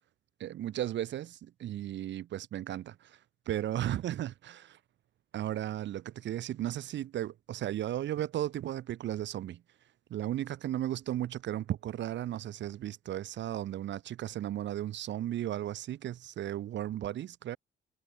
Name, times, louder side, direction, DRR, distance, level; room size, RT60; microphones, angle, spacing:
voice 1, 0.4-3.2 3.5-4.8 5.3-9.6 10.1-17.6, right 12 dB, 65° right, 0.8 m, -35 dB
cardioid pair, 90°, 20 cm